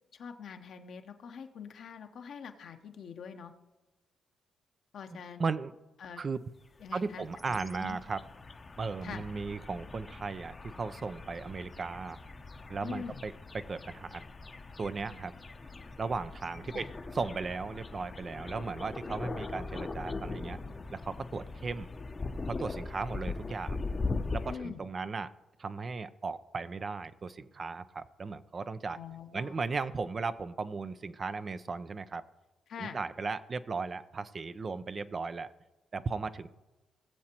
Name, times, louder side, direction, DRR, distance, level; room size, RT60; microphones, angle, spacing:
voice 1, 0.1-3.5 4.9-5.4 6.0-6.2 6.8-8.0 9.0-9.3 12.8-13.2 16.7-16.9 24.4-24.9 28.9-29.6 32.7-33.0, left 6 dB, 65° left, 6 dB, 1.0 m, -44 dB
voice 2, 5.1-5.7 6.2-6.4 6.9-8.2 8.8-12.2 12.7-14.2 14.8-15.3 16.0-16.9 17.1-20.6 20.9-21.9 22.5-23.8 24.3-25.3 25.6-29.0 29.3-32.2 32.8-35.5 35.9-36.5, right 4 dB, 45° right, 12 dB, 0.6 m, -36 dB
sound 1, 6.8-24.6, left 3 dB, 35° left, 0.8 m, -41 dB
19.5 x 7.5 x 3.0 m, 1.1 s
hypercardioid pair, 45°, 0 cm